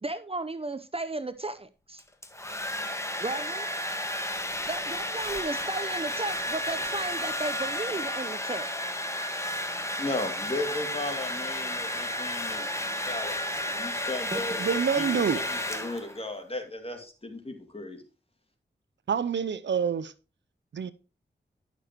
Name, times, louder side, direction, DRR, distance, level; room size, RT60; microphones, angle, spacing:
voice 1, 0.0-2.0 3.2-3.7 4.7-8.7 14.3-14.4, right 2 dB, 30° right, 0.7 m, -34 dB
Domestic sounds home sounds, 2.0-16.3, left 1 dB, 15° left, 1.5 m, -32 dB
voice 2, 10.0-14.6 15.0-18.0, left 2 dB, 30° left, 2.4 m, -36 dB
voice 3, 14.6-15.4 19.1-20.1 20.7-20.9, right 7 dB, 75° right, 0.6 m, -26 dB
11.0 x 6.8 x 3.0 m
cardioid pair, 40°, 19 cm